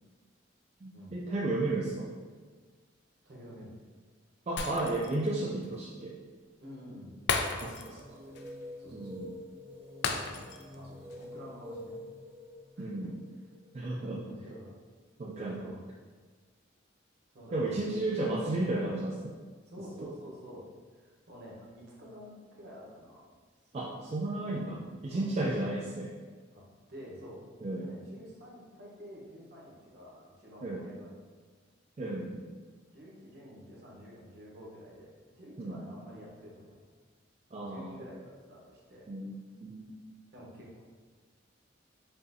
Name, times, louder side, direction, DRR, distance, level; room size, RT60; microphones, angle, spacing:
voice 1, 0.8-2.1 4.5-6.2 7.6-8.0 8.9-9.3 12.8-13.1 13.7-14.2 15.2-15.6 17.5-19.4 19.8-20.1 23.7-26.1 27.6-27.9 30.6-30.8 32.0-32.4 35.6-35.8 37.5-38.0 39.1-39.9, right 2 dB, 35° right, -3 dB, 0.3 m, -33 dB
voice 2, 3.2-3.7 6.6-7.2 7.5-8.4 8.8-9.1 10.3-12.0 12.8-13.1 13.8-14.8 15.5-15.8 17.3-18.3 19.6-20.6 20.9-23.2 24.4-24.8 25.1-25.6 26.5-26.6 26.9-27.4 27.7-31.1 32.9-36.8 37.6-39.1 40.3-40.8, equal, 55° right, -4 dB, 1.0 m, -49 dB
Shatter, 4.6-5.3 5.6-5.7 7.3-8.0 8.3-8.5 10.0-10.7 11.1-11.2, left 5 dB, 60° left, 0.3 m, -34 dB
sound 1, 8.0-14.4, left 1 dB, 10° right, 0.7 m, -47 dB
5.4 x 2.5 x 2.6 m, 1.5 s
head